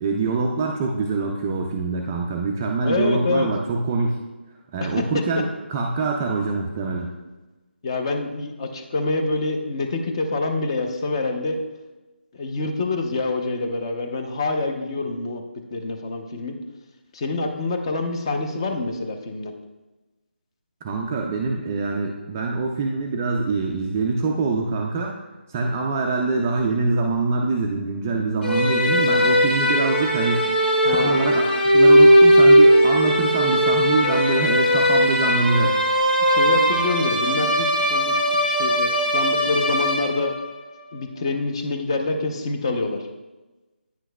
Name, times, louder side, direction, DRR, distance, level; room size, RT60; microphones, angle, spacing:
voice 1, 0.0-4.2 4.7-7.1 20.8-25.2 25.5-30.5 30.9-35.8, right 3 dB, 15° right, 0 dB, 0.3 m, -24 dB
voice 2, 2.8-3.5 4.8-5.2 7.8-11.6 12.4-15.4 15.7-16.6 17.1-19.5 30.8-31.2 36.3-40.3 40.9-43.0, left 3 dB, 25° left, 4 dB, 0.7 m, -26 dB
sound 1, 28.4-40.5, equal, 70° left, 2.3 m, -18 dB
9.3 x 6.1 x 2.2 m, 1.1 s
figure-of-eight pair, 165°, 6 cm